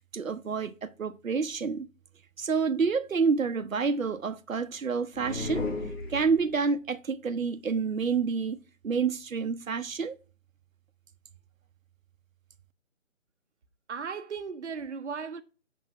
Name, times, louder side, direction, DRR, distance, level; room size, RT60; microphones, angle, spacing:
voice 1, 0.1-1.9 2.4-5.8 6.1-8.6 8.8-10.2, right 5 dB, 85° right, 0.9 m, -28 dB
sound 1, 5.1-6.7, left 2 dB, 50° left, 4.7 m, -34 dB
voice 2, 13.9-15.4, right 5 dB, 60° right, 0.8 m, -36 dB
10.0 x 3.6 x 6.2 m
figure-of-eight pair, 175°, 39 cm